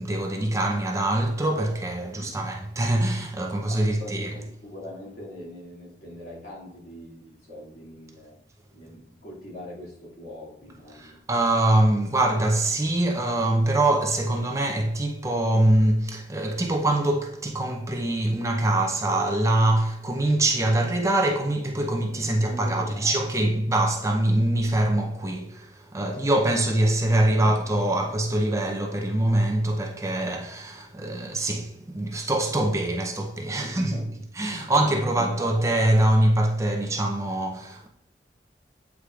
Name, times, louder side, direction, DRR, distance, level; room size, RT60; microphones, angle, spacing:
voice 1, 0.0-4.3 10.9-33.9 34.4-37.9, right 1 dB, 15° right, 0.6 m, -24 dB
voice 2, 2.1-2.5 3.7-8.4 8.7-11.2 22.4-23.5 33.6-34.2 34.5-35.5, equal, 65° left, 2.4 m, -42 dB
8.4 x 4.8 x 2.4 m
head